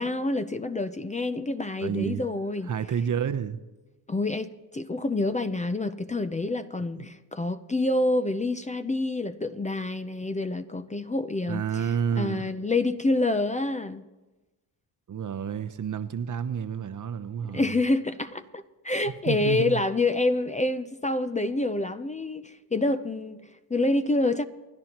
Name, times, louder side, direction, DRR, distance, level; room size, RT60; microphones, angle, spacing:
voice 1, 0.0-2.7 4.1-11.8 12.2-14.0 17.5-24.4, left 2 dB, 15° left, 0.6 m, -27 dB
voice 2, 1.8-2.2 2.7-3.6 11.5-12.5 15.1-17.8 19.3-19.8, right 8 dB, 45° right, 0.8 m, -29 dB
28.5 x 11.0 x 3.0 m
cardioid pair, 80°, 42 cm